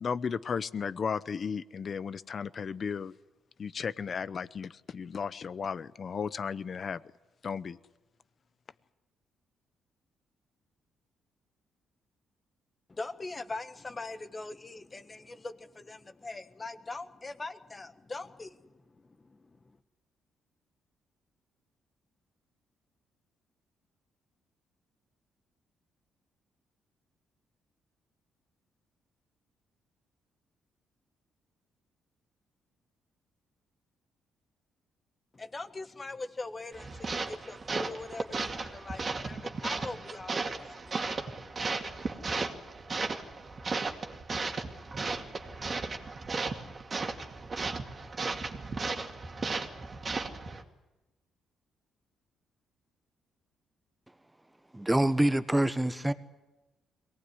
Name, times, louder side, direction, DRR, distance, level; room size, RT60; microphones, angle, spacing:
voice 1, 0.0-3.1 3.6-7.0 7.4-7.8, left 6 dB, 45° left, 0.8 m, -34 dB
voice 2, 12.9-19.8 35.3-42.2, left 3 dB, 25° left, 1.4 m, -42 dB
sound 1, 36.7-50.6, right 3 dB, 35° right, 2.3 m, -35 dB
voice 3, 54.7-56.1, right 1 dB, 10° right, 1.3 m, -26 dB
23.0 x 18.5 x 9.7 m
cardioid pair, 90°, 0 cm